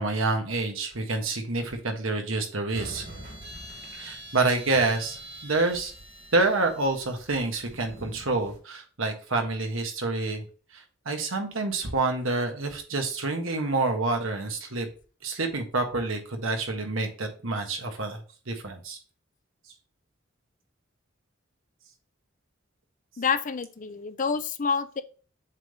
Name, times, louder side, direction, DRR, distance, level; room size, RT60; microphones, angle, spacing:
voice 1, 0.0-3.0 3.9-5.9 6.3-10.5 10.7-14.9 15.2-18.2 18.5-19.0, right 3 dB, 75° right, 4 dB, 1.4 m, -28 dB
sound 1, 2.7-8.6, right 1 dB, 60° right, 2.6 m, -44 dB
voice 2, 23.2-25.0, left 6 dB, 40° left, 12 dB, 0.5 m, -28 dB
7.4 x 3.5 x 4.0 m, 0.37 s
head